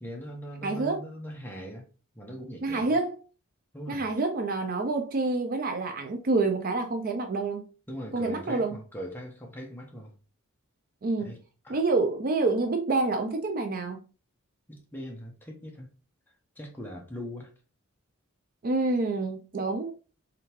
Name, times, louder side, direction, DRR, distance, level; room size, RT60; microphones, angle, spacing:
voice 1, 0.0-1.9 2.1-3.0 3.7-4.1 7.9-10.1 11.2-11.4 11.6-11.8 14.7-15.9 16.6-17.5, equal, 10° left, 1.0 m, -40 dB
voice 2, 0.6-1.0 2.6-3.2 3.9-7.7 8.1-8.7 11.0-11.3 11.7-14.0 18.6-19.9, right 3 dB, 40° right, 0.4 m, -27 dB
3.6 x 3.5 x 3.0 m
head